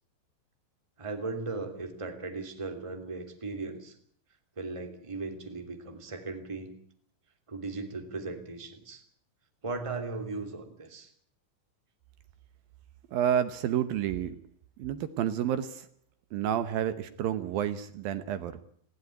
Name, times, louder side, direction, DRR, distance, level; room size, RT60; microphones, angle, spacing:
voice 1, 1.0-3.9 4.6-6.7 7.5-9.0 9.6-11.1, right 3 dB, 10° right, 5 dB, 1.7 m, -37 dB
voice 2, 13.1-14.4 14.8-15.9 16.3-18.6, right 10 dB, 75° right, 11 dB, 2.2 m, -30 dB
19.5 x 16.0 x 9.5 m, 0.62 s
omnidirectional pair, 5.3 m